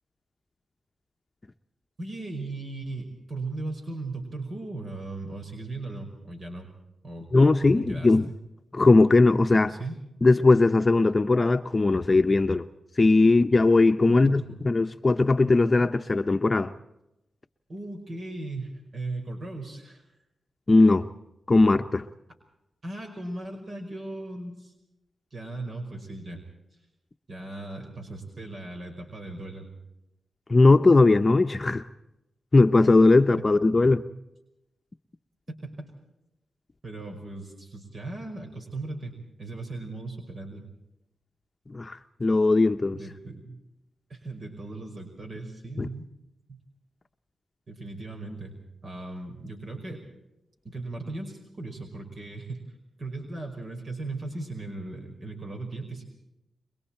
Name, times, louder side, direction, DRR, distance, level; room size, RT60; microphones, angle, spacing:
voice 1, 2.0-6.7 7.0-7.3 7.7-8.4 9.7-10.0 14.1-14.6 17.7-20.0 22.8-24.7 25.3-26.4 27.3-29.7 36.8-40.6 42.9-43.6 44.1-46.0 46.5-46.6 47.7-48.5 48.8-50.0 50.6-52.6 53.0-56.0, right 2 dB, 55° right, 5.3 m, -37 dB
voice 2, 7.3-8.3 8.7-9.8 10.2-12.6 13.0-16.7 20.7-21.1 21.5-22.1 30.5-31.8 32.5-34.0 41.7-43.0 45.8-45.9, left 3 dB, 35° left, 0.9 m, -19 dB
28.5 x 23.0 x 4.4 m
cardioid pair, 65°, 0 cm